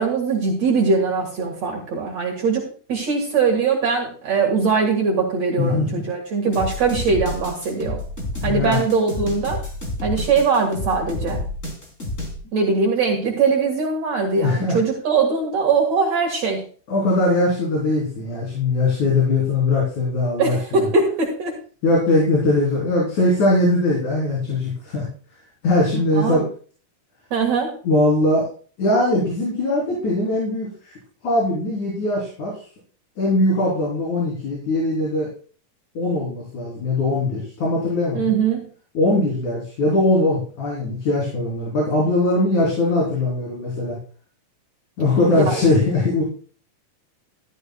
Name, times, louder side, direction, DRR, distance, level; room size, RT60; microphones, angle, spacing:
voice 1, 0.0-8.0 8.4-9.6 10.0-11.4 12.5-16.7 20.4-21.6 26.2-26.5 27.3-27.8 38.1-38.7 45.4-45.6, right 4 dB, 55° right, 0 dB, 2.8 m, -21 dB
voice 2, 5.6-6.0 8.4-8.8 14.4-14.8 16.9-20.9 21.8-25.1 25.6-26.4 27.8-28.5 28.8-30.9 31.2-32.6 33.2-35.3 35.9-38.4 38.9-44.0 45.0-46.2, left 2 dB, 65° left, -4 dB, 4.9 m, -20 dB
sound 1, 6.5-12.4, left 1 dB, 20° left, 4.0 m, -29 dB
14.5 x 12.5 x 2.3 m, 0.41 s
omnidirectional pair, 3.7 m